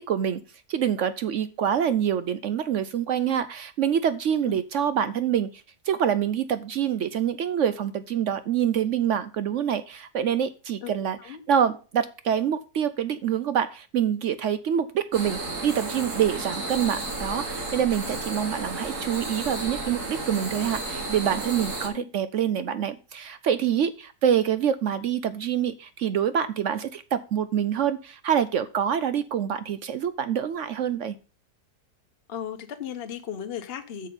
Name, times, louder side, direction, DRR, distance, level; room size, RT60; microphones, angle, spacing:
voice 1, 0.1-0.4 0.7-31.2, right 9 dB, 70° right, 0.7 m, -26 dB
voice 2, 10.8-11.4 21.9-22.1 32.3-34.1, left 9 dB, 45° left, 1.0 m, -36 dB
sound 1, 15.1-21.9, right 2 dB, 50° right, 2.4 m, -33 dB
8.2 x 6.6 x 5.2 m
omnidirectional pair, 1.8 m